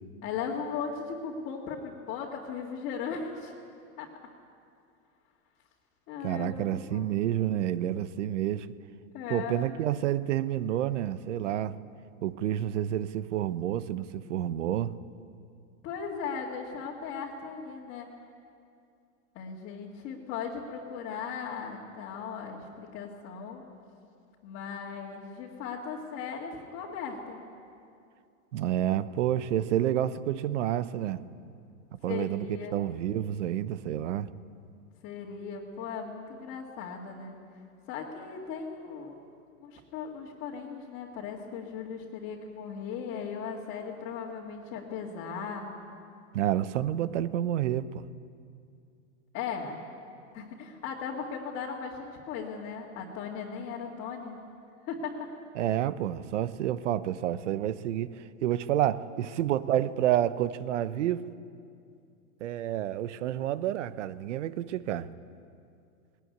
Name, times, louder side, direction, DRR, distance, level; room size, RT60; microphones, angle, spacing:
voice 1, 0.2-3.5 4.0-4.1 6.1-7.0 9.1-9.7 15.8-18.1 19.3-23.6 24.4-27.4 32.1-32.8 35.0-37.4 37.9-39.1 39.6-45.7 49.3-49.8 50.3-54.4 54.9-55.3, left 6 dB, 30° left, -4 dB, 2.3 m, -37 dB
voice 2, 6.2-8.7 9.3-11.8 12.2-15.0 28.5-31.2 31.9-32.5 32.7-34.3 46.3-48.1 55.6-61.3 62.4-65.1, right 11 dB, 60° right, 15 dB, 1.0 m, -29 dB
20.0 x 19.5 x 9.4 m, 2.4 s
supercardioid pair, 165°, 41 cm